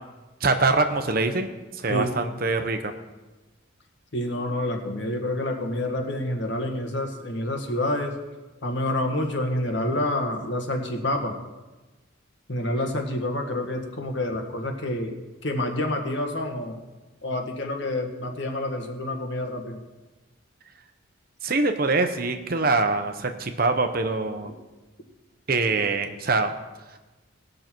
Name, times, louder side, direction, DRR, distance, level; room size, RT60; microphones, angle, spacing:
voice 1, 0.4-2.9 21.4-24.5 25.5-26.5, right 3 dB, 45° right, 7 dB, 0.9 m, -24 dB
voice 2, 4.1-8.1 8.6-11.3 12.5-16.8 17.2-19.8, left 1 dB, 60° left, 3 dB, 1.6 m, -28 dB
19.5 x 6.5 x 4.6 m, 1.1 s
head